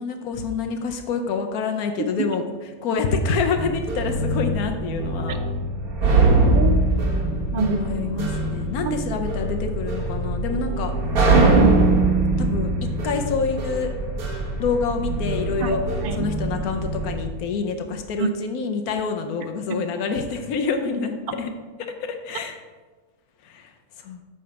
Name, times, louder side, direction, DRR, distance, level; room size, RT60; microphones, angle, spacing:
voice 1, 0.0-2.4 2.8-5.4 7.6-10.9 12.4-12.7 13.0-13.9 14.6-15.8 16.1-21.5 22.0-22.6 23.4-23.7 24.0-24.2, left 5 dB, 85° left, 6 dB, 1.2 m, -27 dB
sound 1, 3.5-17.2, right 2 dB, 90° right, 1.7 m, -22 dB
voice 2, 6.4-6.9 7.5-7.8 8.8-9.0 11.3-11.8 15.6-16.2 18.2-18.3 19.7-19.8, right 4 dB, 60° right, 9 dB, 0.5 m, -24 dB
8.5 x 4.2 x 5.8 m, 1.3 s
omnidirectional pair, 1.5 m